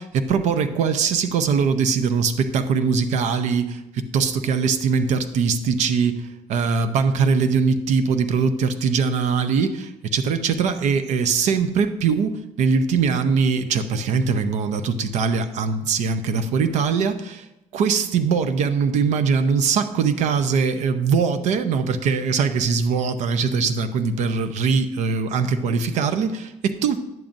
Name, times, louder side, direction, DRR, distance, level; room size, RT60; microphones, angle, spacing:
voice 1, 0.0-17.5 17.7-27.0, right 5 dB, 75° right, 9 dB, 0.7 m, -22 dB
11.0 x 8.7 x 2.6 m, 0.94 s
cardioid pair, 150°, 12 cm